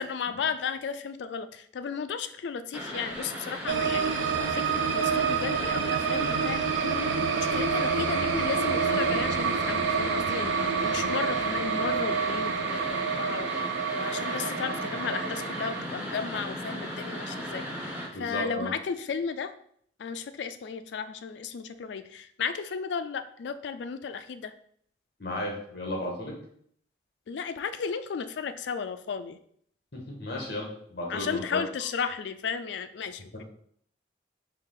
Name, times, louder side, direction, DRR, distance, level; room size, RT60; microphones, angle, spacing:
voice 1, 0.0-19.5 20.0-24.5 27.3-29.4 31.1-33.4, left 6 dB, 75° left, 10 dB, 0.3 m, -34 dB
sound 1, 2.7-18.1, equal, 10° right, 0.7 m, -36 dB
sound 2, 3.7-15.8, right 6 dB, 85° right, 0.4 m, -28 dB
voice 2, 18.1-18.7 25.2-26.3 29.9-31.6 33.3-33.4, left 1 dB, 60° left, -1 dB, 1.3 m, -34 dB
4.7 x 2.7 x 3.8 m, 0.64 s
head